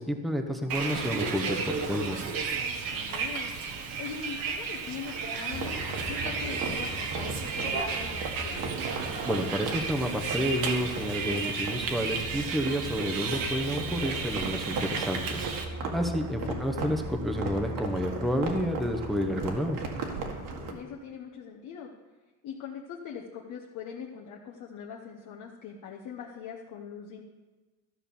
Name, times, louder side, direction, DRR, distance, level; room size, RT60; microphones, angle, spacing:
voice 1, 0.0-2.2 9.2-15.5 15.9-19.8, equal, ahead, 3 dB, 0.8 m, -30 dB
Bus, 0.7-15.6, right 5 dB, 90° right, 1.4 m, -33 dB
voice 2, 2.9-3.5 4.0-8.7 16.4-16.6 20.5-21.9 22.4-27.2, left 7 dB, 60° left, 0 dB, 1.1 m, -42 dB
sound 1, 5.5-20.7, right 3 dB, 70° right, 1.8 m, -37 dB
13.5 x 5.9 x 7.0 m, 1.2 s
cardioid pair, 160°, 33 cm